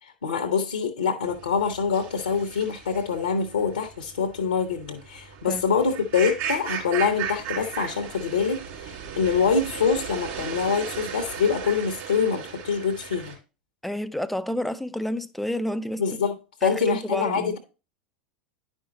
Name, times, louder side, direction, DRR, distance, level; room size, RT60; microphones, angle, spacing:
voice 1, 0.0-13.4 16.0-16.3 16.6-17.6, left 6 dB, 70° left, 0.8 m, -25 dB
sound 1, 1.3-13.3, right 7 dB, 45° right, 3.4 m, -36 dB
voice 2, 13.8-16.0 16.6-17.6, left 1 dB, ahead, 0.4 m, -29 dB
10.0 x 5.3 x 2.8 m
figure-of-eight pair, 85°, 5 cm